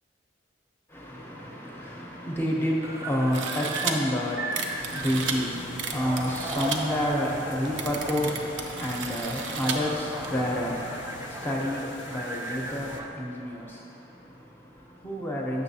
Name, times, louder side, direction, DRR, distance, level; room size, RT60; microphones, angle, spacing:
voice 1, 0.9-15.6, equal, 10° left, -3 dB, 0.7 m, -30 dB
sound 1, 2.8-13.1, right 1 dB, 15° right, 0.3 m, -38 dB
sound 2, 3.3-3.9 4.5-5.4 5.8-6.8 7.4-7.5 7.6-9.8 10.2-10.3, right 6 dB, 70° right, 0.5 m, -33 dB
sound 3, 4.7-13.0, left 3 dB, 65° left, 0.5 m, -43 dB
6.9 x 6.8 x 2.7 m, 3.0 s
head